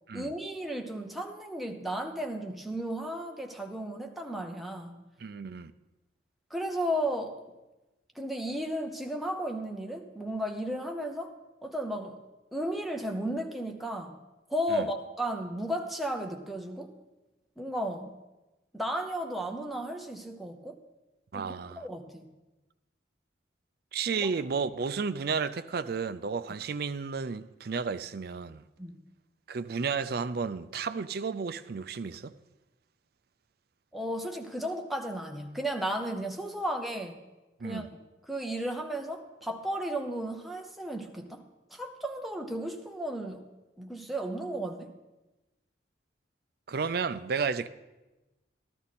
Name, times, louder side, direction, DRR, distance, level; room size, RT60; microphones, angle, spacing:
voice 1, 0.1-5.1 6.5-7.4 8.2-11.4 11.6-12.2 12.5-14.2 14.5-16.9 17.6-18.1 18.7-20.8 21.3-22.2 24.1-24.3 28.8-29.0 33.9-37.2 37.6-37.9 38.3-41.4 41.7-43.4 43.8-45.0, right 1 dB, ahead, 0.7 m, -34 dB
voice 2, 5.2-5.7 14.7-14.8 21.3-21.9 23.9-28.6 29.5-32.3 37.6-37.9 46.7-47.7, right 5 dB, 55° right, 0.4 m, -32 dB
13.0 x 13.0 x 4.2 m
head